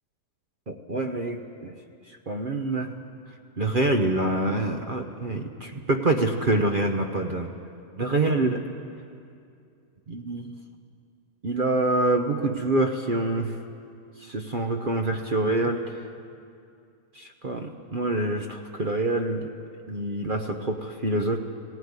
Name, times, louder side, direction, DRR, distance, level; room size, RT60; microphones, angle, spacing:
voice 1, 0.7-1.7 2.1-2.9 3.6-7.5 7.9-8.6 10.1-10.5 11.4-13.6 14.2-16.0 17.1-19.5 19.9-21.4, right 2 dB, 40° right, 4 dB, 0.9 m, -26 dB
17.5 x 15.5 x 9.7 m, 2.4 s
omnidirectional pair, 1.7 m